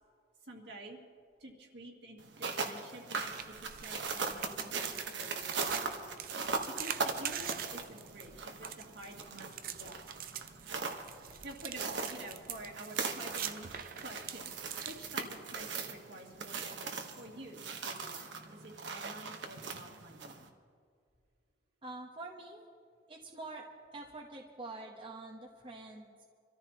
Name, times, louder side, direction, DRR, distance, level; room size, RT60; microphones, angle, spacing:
voice 1, 0.4-1.0 1.4-6.0 6.7-10.0 11.2-14.5 14.8-20.5, right 1 dB, 65° right, -1 dB, 2.2 m, -49 dB
sound 1, 2.2-20.5, right 4 dB, 85° right, 1.3 m, -40 dB
sound 2, 3.2-15.6, right 9 dB, 50° right, 0.6 m, -44 dB
voice 2, 21.8-22.6 23.1-26.2, right 2 dB, 30° right, -1 dB, 1.1 m, -46 dB
26.5 x 14.0 x 3.0 m, 2.1 s
head